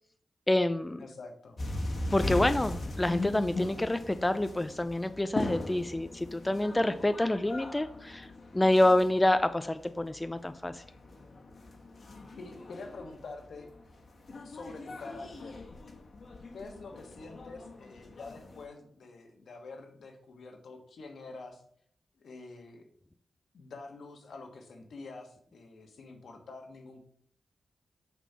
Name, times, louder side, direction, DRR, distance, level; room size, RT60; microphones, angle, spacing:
voice 1, 0.5-1.0 2.1-8.3 8.5-10.8, left 1 dB, 15° left, 11 dB, 0.4 m, -27 dB
voice 2, 1.0-1.6 12.4-13.7 14.4-15.6 16.5-21.6 22.2-22.8 23.5-27.0, left 3 dB, 75° left, 4 dB, 1.4 m, -46 dB
sound 1, 1.6-18.7, left 2 dB, 50° left, 1.3 m, -40 dB
7.1 x 4.4 x 5.6 m, 0.62 s
wide cardioid pair, 115°, 0 cm